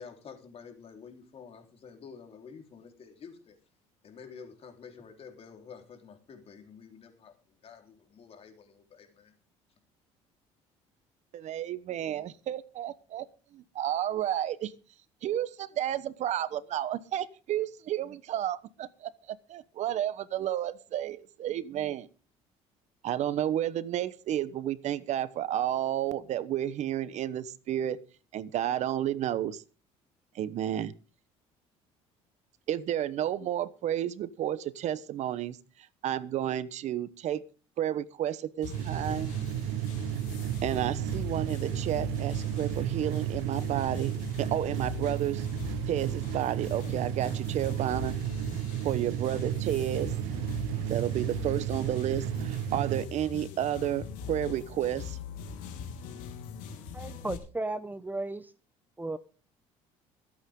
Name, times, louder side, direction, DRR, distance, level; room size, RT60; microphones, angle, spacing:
voice 1, 0.0-3.6 4.0-9.3, left 6 dB, 50° left, 4 dB, 4.0 m, -49 dB
voice 2, 11.3-13.3 13.5-14.7 15.2-22.1 23.0-28.0 28.3-29.6 30.3-30.9 32.7-35.6 36.0-37.4 37.8-39.3 40.6-45.5 45.9-48.2 48.8-50.1 50.9-55.2, right 11 dB, 60° right, 16 dB, 1.0 m, -31 dB
sound 1, 38.6-57.4, left 7 dB, 85° left, 3.1 m, -41 dB
sound 2, 38.7-53.0, right 11 dB, 85° right, 1.2 m, -33 dB
voice 3, 56.9-58.5 59.0-59.2, right 2 dB, 15° right, 13 dB, 1.0 m, -35 dB
23.0 x 8.9 x 3.8 m, 0.36 s
supercardioid pair, 85°, 13 cm